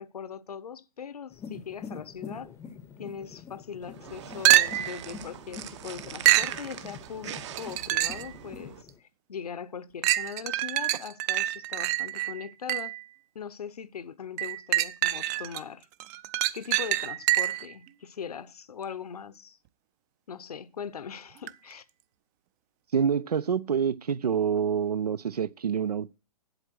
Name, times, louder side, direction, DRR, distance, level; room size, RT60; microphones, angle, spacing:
voice 1, 0.0-2.5 3.0-13.0 13.3-15.9 16.5-19.6 20.3-21.8, left 7 dB, 80° left, 0.8 m, -40 dB
sound 1, 1.3-9.0, left 6 dB, 15° left, 0.6 m, -45 dB
sound 2, 3.8-8.8, right 11 dB, 50° right, 0.9 m, -42 dB
sound 3, 4.4-5.0 6.2-6.6 7.6-8.3 8.9-9.0 10.0-13.0 14.4-15.6 16.0-17.7 21.5-21.6, right 16 dB, 30° right, 0.5 m, -25 dB
voice 2, 22.9-26.1, right 7 dB, 90° right, 0.5 m, -27 dB
8.2 x 8.0 x 6.1 m
hypercardioid pair, 130°, 19 cm